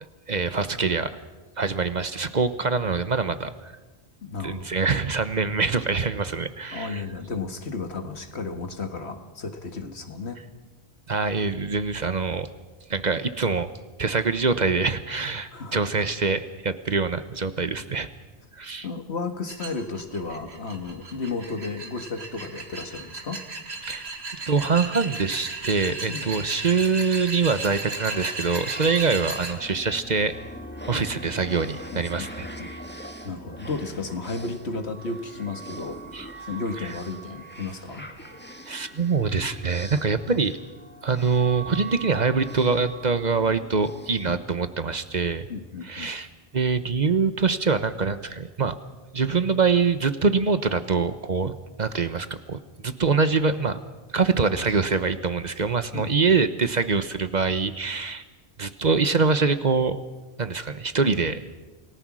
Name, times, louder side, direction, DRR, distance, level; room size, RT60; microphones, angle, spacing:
voice 1, 0.3-1.2 1.6-3.7 4.4-7.0 11.1-12.5 12.9-13.7 14.0-18.1 18.6-18.9 23.8-24.1 24.5-30.3 30.9-32.5 36.1-36.3 36.8-37.0 38.7-40.6 41.0-45.5 45.8-46.3 46.5-48.8 49.1-53.8 54.1-58.2 58.6-60.0 60.4-61.4, right 4 dB, 45° right, 11 dB, 1.0 m, -24 dB
voice 2, 4.2-4.7 6.7-10.4 15.5-15.8 18.8-23.4 26.1-26.2 30.9-31.1 31.9-32.3 32.6-36.0 36.5-38.1 44.2-44.4 45.5-46.1 55.9-56.1, left 3 dB, 80° left, 7 dB, 2.0 m, -33 dB
sound 1, 19.5-29.5, right 3 dB, 75° right, 2.2 m, -35 dB
sound 2, 27.5-45.1, right 1 dB, 10° left, 1.7 m, -42 dB
28.5 x 18.0 x 6.2 m, 1.2 s
omnidirectional pair, 1.1 m